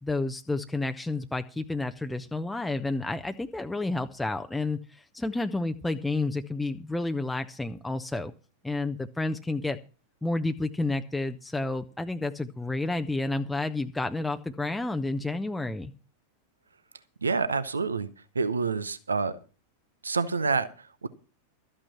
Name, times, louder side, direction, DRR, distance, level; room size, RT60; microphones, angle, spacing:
voice 1, 0.0-8.3 8.6-9.8 10.2-15.9, left 2 dB, 5° left, 7 dB, 0.6 m, -30 dB
voice 2, 17.2-18.1 18.3-19.4 20.0-21.1, right 4 dB, 75° right, 15 dB, 0.7 m, -28 dB
13.5 x 8.8 x 5.7 m, 0.36 s
figure-of-eight pair, 90°, 0 cm